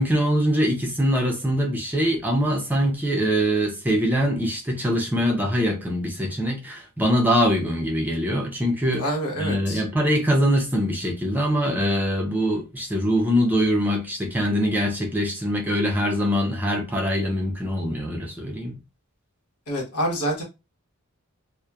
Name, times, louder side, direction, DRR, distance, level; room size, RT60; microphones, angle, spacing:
voice 1, 0.0-9.0 9.4-18.8, equal, 10° right, 0.5 m, -23 dB
voice 2, 9.0-9.8 19.7-20.4, equal, 90° left, 0.9 m, -26 dB
2.8 x 2.1 x 2.3 m
head